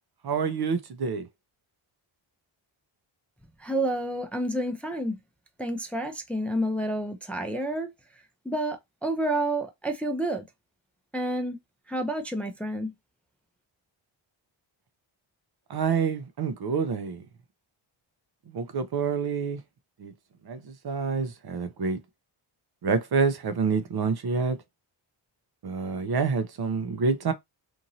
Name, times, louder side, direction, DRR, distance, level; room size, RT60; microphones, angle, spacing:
voice 1, 0.2-1.2 15.7-17.2 18.5-19.6 20.0-20.1 20.5-20.6 20.8-22.0 22.8-24.6 25.6-27.3, right 5 dB, 50° right, 0.6 m, -27 dB
voice 2, 3.6-5.2 5.6-7.9 8.5-10.5 11.1-11.6 11.9-12.9, right 1 dB, 5° left, 0.5 m, -29 dB
3.0 x 2.6 x 2.6 m
cardioid pair, 90°, 50 cm